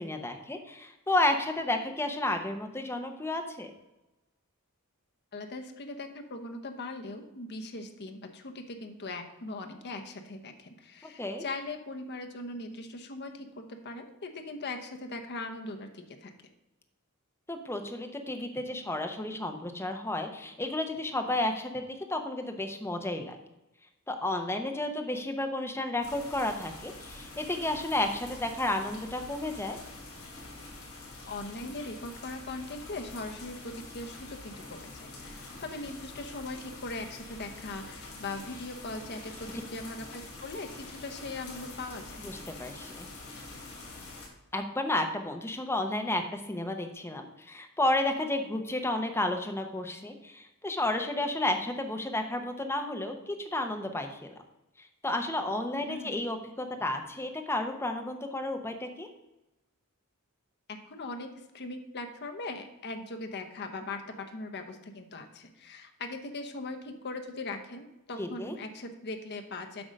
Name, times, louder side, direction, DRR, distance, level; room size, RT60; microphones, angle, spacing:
voice 1, 0.0-3.7 11.0-11.4 17.5-23.3 24.1-29.8 42.2-43.1 44.5-54.3 54.8-59.1 68.2-68.5, left 1 dB, 10° left, 5 dB, 0.7 m, -32 dB
voice 2, 5.3-16.3 31.3-42.3 55.9-56.3 60.7-69.9, left 2 dB, 50° left, 5 dB, 0.8 m, -40 dB
sound 1, 26.0-44.3, left 2 dB, 85° left, 2.8 m, -46 dB
8.0 x 3.8 x 6.4 m, 0.97 s
head